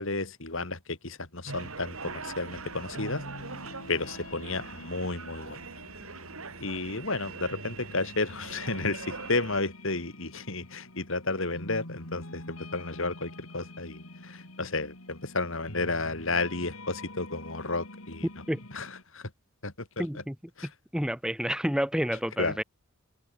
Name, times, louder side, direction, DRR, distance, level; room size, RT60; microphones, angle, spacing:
voice 1, 0.0-3.2 3.9-5.6 6.6-18.3 18.7-19.3 19.6-20.1 20.6-20.7 22.4-22.6, left 3 dB, 65° left, 3.3 m, -32 dB
sound 1, 1.5-9.6, right 4 dB, 75° right, 3.9 m, -42 dB
sound 2, 2.4-19.0, left 1 dB, 80° left, 6.2 m, -46 dB
voice 2, 20.0-20.3 20.6-22.6, equal, 5° right, 1.3 m, -29 dB
head